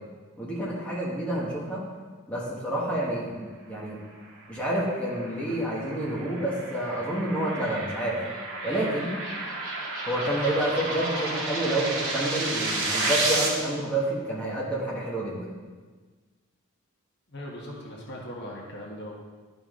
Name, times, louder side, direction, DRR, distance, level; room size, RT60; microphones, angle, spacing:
voice 1, 0.4-1.8 2.3-4.0 4.5-8.2 8.6-9.1 10.0-15.5, right 1 dB, 5° left, -6 dB, 1.5 m, -29 dB
sound 1, 4.6-13.5, right 2 dB, 65° right, 2.2 m, -31 dB
voice 2, 17.3-19.1, equal, 50° left, -2 dB, 1.4 m, -39 dB
11.5 x 5.4 x 3.8 m, 1.4 s
head